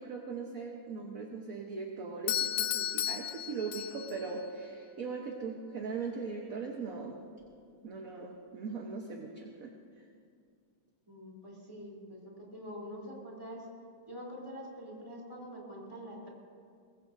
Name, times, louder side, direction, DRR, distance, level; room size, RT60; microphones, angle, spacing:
voice 1, 0.0-7.2 7.8-10.1, right 4 dB, 50° right, 1 dB, 1.3 m, -40 dB
Doorbell, 2.3-4.3, left 11 dB, 90° left, 0.9 m, -33 dB
voice 2, 11.1-13.7 14.1-16.3, equal, 15° right, -4 dB, 3.4 m, -45 dB
23.5 x 20.5 x 2.7 m, 2.3 s
omnidirectional pair, 2.3 m